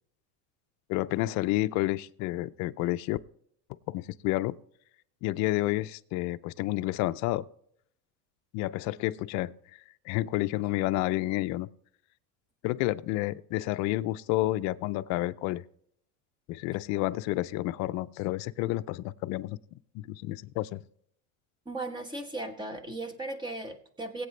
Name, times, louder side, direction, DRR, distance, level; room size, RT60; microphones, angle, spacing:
voice 1, 0.9-3.2 3.9-4.5 5.2-7.4 8.5-9.5 10.1-11.7 12.6-15.6 16.5-19.6 19.9-20.8, left 17 dB, 45° left, 0.5 m, -30 dB
voice 2, 21.6-24.3, right 2 dB, 10° right, 1.1 m, -37 dB
20.5 x 8.5 x 3.2 m
cardioid pair, 150°, 38 cm